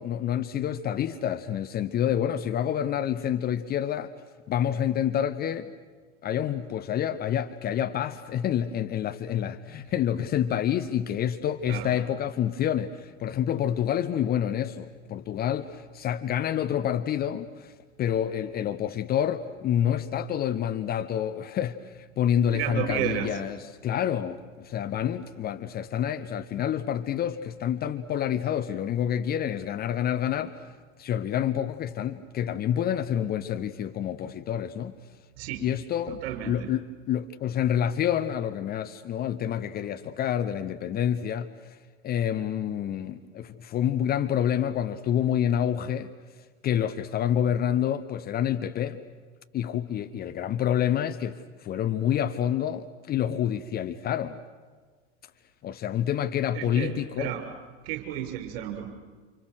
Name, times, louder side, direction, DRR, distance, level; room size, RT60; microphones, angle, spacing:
voice 1, 0.0-4.1 4.5-5.7 6.2-17.7 18.0-30.6 31.0-34.9 35.6-41.8 42.0-46.1 46.6-49.0 49.5-54.4 55.6-57.3, left 10 dB, 25° left, 0.9 m, -28 dB
voice 2, 22.5-23.3 35.4-35.7 36.1-36.7 56.5-57.4 57.8-58.9, right 12 dB, 50° right, 5.9 m, -32 dB
30.0 x 27.5 x 6.4 m
figure-of-eight pair, 85°, 37 cm